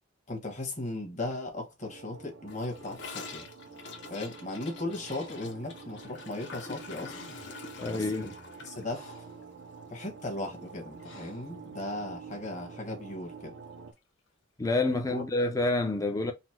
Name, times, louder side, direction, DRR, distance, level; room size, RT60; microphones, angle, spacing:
voice 1, 0.3-3.4 4.1-7.2 7.9-8.3 8.6-9.1 9.9-13.5 15.1-15.2, left 2 dB, 35° left, 1.2 m, -37 dB
sound 1, 1.8-13.9, right 5 dB, 70° right, 0.6 m, -48 dB
Gurgling / Toilet flush, 2.5-10.7 11.0-11.1 11.4-11.9 12.1-12.2 12.5-12.6 13.6-13.7, left 4 dB, 55° left, 0.8 m, -46 dB
Breathing, 5.0-5.5 6.7-6.8 7.0-7.7 8.4-9.4 11.0-11.5, left 2 dB, 80° left, 1.5 m, -52 dB
voice 2, 7.8-8.3 14.6-16.3, left 2 dB, 15° left, 0.4 m, -28 dB
4.0 x 2.1 x 4.4 m
head